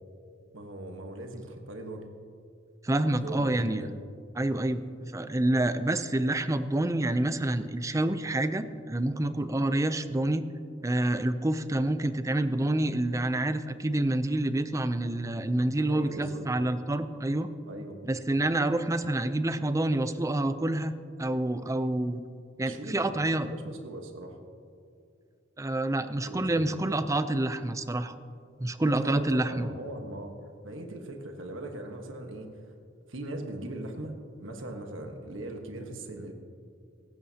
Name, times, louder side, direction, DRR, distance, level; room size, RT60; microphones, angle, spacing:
voice 1, 0.5-2.1 3.2-3.9 15.9-16.4 17.7-18.0 22.6-24.4 26.3-26.8 29.0-30.3 30.6-32.7 33.1-36.3, right 1 dB, 80° right, 4 dB, 1.3 m, -40 dB
voice 2, 2.8-3.8 4.4-10.4 10.8-17.5 18.0-20.9 21.2-22.2 22.6-23.5 25.6-28.1 28.6-29.7, right 1 dB, 15° right, 11 dB, 0.5 m, -28 dB
17.5 x 15.5 x 2.9 m, 2.4 s
head